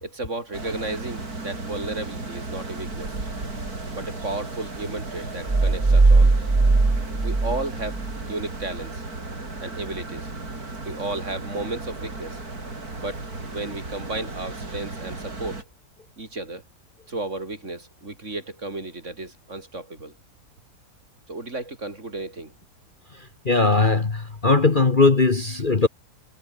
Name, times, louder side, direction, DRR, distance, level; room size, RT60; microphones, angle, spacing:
voice 1, 0.0-3.2 3.9-6.3 7.2-9.0 9.6-10.3 10.8-12.4 13.0-15.7 16.2-16.6 17.1-20.1 21.3-22.5, right 2 dB, 45° right, 4.4 m, -33 dB
sound 1, 0.5-15.6, right 2 dB, 65° right, 5.4 m, -35 dB
sound 2, 5.5-8.2, right 3 dB, 20° right, 1.1 m, -18 dB
voice 2, 23.4-25.9, left 3 dB, 30° left, 1.6 m, -19 dB
omnidirectional pair, 1.7 m